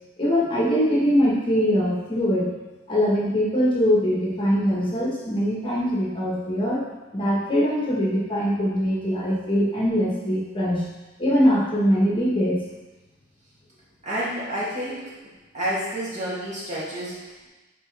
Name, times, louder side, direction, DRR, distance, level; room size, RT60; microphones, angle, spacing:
voice 1, 0.2-2.5 2.9-6.8 7.1-10.8 11.2-12.6, equal, 25° left, -5 dB, 1.2 m, -22 dB
voice 2, 14.0-15.1 15.5-17.5, equal, 35° right, -9 dB, 2.5 m, -29 dB
9.7 x 4.5 x 3.3 m, 1.2 s
head